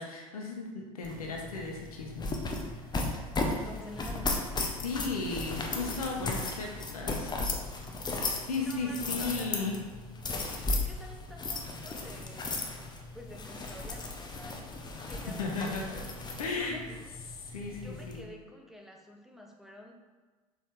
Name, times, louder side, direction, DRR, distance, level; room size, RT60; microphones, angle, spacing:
voice 1, 0.0-2.4 4.8-7.3 8.4-9.8 14.9-16.0 16.4-16.8 17.4-18.3, left 3 dB, 80° left, 0 dB, 1.5 m, -35 dB
sound 1, 1.0-18.2, left 2 dB, 25° left, 1.3 m, -36 dB
voice 2, 3.4-4.4 6.0-6.1 7.1-7.3 8.5-9.7 10.7-12.7 13.1-14.7 15.1-17.2 17.8-19.9, left 1 dB, ahead, 1 dB, 1.2 m, -49 dB
6.9 x 5.3 x 4.9 m, 1.3 s
hypercardioid pair, 80°, 18 cm